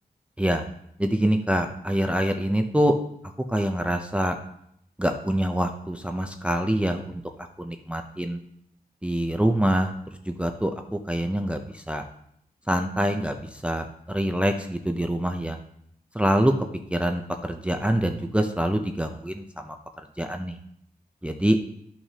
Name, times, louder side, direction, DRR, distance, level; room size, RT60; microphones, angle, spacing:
voice 1, 1.0-2.9 3.5-4.4 5.0-7.2 7.6-8.4 9.0-9.9 10.3-12.0 12.7-15.6 16.1-16.5 16.9-19.8 20.2-20.6 21.2-21.6, right 1 dB, 5° right, 5 dB, 0.5 m, -25 dB
12.5 x 5.8 x 2.8 m, 0.73 s
wide cardioid pair, 135°, 16 cm